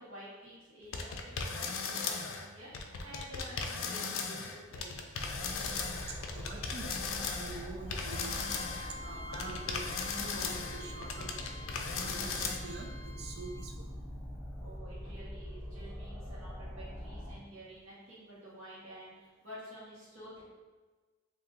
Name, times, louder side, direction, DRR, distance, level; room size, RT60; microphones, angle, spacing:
voice 1, 0.0-2.7 3.0-5.3 14.6-20.4, equal, 75° right, -8 dB, 1.4 m, -50 dB
sound 1, 0.9-2.5 2.7-9.0 9.3-12.6, left 5 dB, 70° left, 0.4 m, -37 dB
sound 2, 5.2-17.4, equal, 15° right, 0.8 m, -44 dB
voice 2, 6.0-11.6 11.9-14.4, right 3 dB, 50° right, 2 dB, 0.4 m, -46 dB
Bowed string instrument, 7.9-13.6, left 2 dB, 25° left, 0.7 m, -49 dB
2.8 x 2.7 x 3.4 m, 1.3 s
head